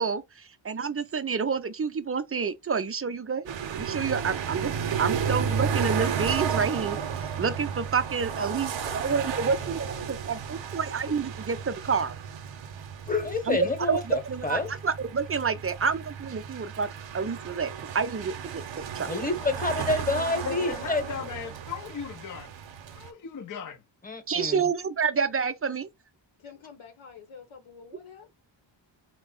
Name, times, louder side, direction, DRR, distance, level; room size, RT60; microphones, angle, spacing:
voice 1, 0.0-3.4 3.8-4.7 5.0-12.1 13.5-13.6 13.9-16.9 17.1-18.6 18.9-19.1 24.3-25.9, right 5 dB, 30° right, 0.4 m, -29 dB
sound 1, 3.5-23.1, right 7 dB, 65° right, 0.7 m, -33 dB
voice 2, 8.2-10.3 10.6-10.9 19.0-21.5 26.4-28.3, left 6 dB, 80° left, 0.9 m, -48 dB
voice 3, 13.1-14.7 19.1-21.0 24.0-24.6, left 3 dB, 15° left, 1.1 m, -28 dB
voice 4, 20.4-22.5 22.9-23.8, left 6 dB, 40° left, 0.5 m, -37 dB
4.4 x 2.0 x 3.8 m
wide cardioid pair, 105°, 48 cm